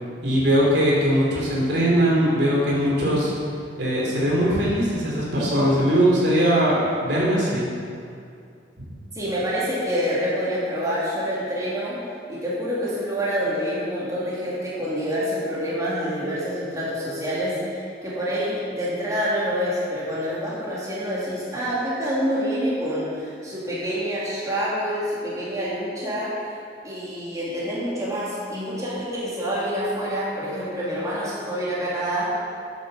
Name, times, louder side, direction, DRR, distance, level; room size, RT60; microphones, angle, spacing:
voice 1, 0.2-3.3 3.8-7.7, equal, 65° right, -5 dB, 3.4 m, -20 dB
voice 2, 9.1-26.4 26.8-32.3, equal, 20° right, -8 dB, 3.2 m, -27 dB
9.8 x 9.3 x 6.9 m, 2.4 s
head